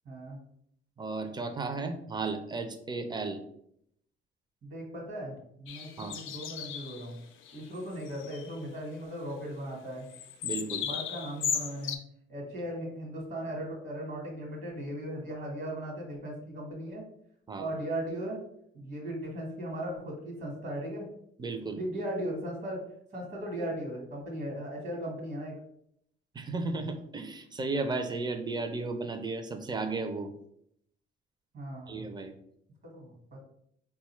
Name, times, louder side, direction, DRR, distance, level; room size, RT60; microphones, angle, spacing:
voice 1, 0.0-0.4 4.6-7.2 7.5-10.1 10.8-12.0 12.3-17.0 17.6-18.4 18.7-21.1 21.7-22.8 23.1-25.6 31.5-32.1 32.9-33.4, right 1 dB, 60° right, 0 dB, 1.2 m, -37 dB
voice 2, 1.0-3.4 6.0-6.2 10.4-10.9 17.5-17.7 21.4-21.8 26.3-30.3 31.9-32.3, right 3 dB, 20° right, 7 dB, 0.5 m, -34 dB
sound 1, 5.7-7.1 7.4-7.6 7.9-8.6 10.1-12.0, left 8 dB, 85° left, 0.4 m, -36 dB
3.8 x 2.3 x 3.0 m, 0.71 s
cardioid pair, 90°, 20 cm